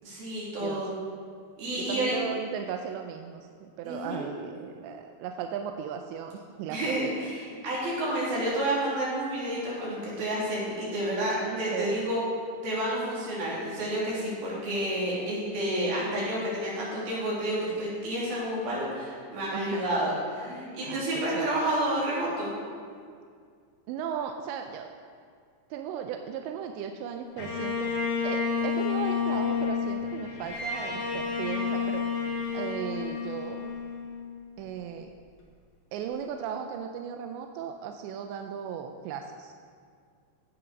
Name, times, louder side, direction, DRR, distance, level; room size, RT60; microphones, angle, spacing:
voice 1, 0.0-0.9 1.6-2.2 3.8-4.2 6.7-12.2 12.6-20.1 20.4-22.5, right 1 dB, 55° right, -6 dB, 5.1 m, -30 dB
voice 2, 0.6-1.0 1.8-7.1 11.4-12.0 19.5-20.0 20.8-21.5 23.9-24.9 25.7-27.9 28.2-32.1 32.5-33.7 34.6-35.1 35.9-39.5, right 8 dB, 85° right, 5 dB, 2.7 m, -36 dB
Bowed string instrument, 27.4-34.6, left 5 dB, 45° left, 2.8 m, -30 dB
16.0 x 9.0 x 5.2 m, 2.1 s
omnidirectional pair, 5.4 m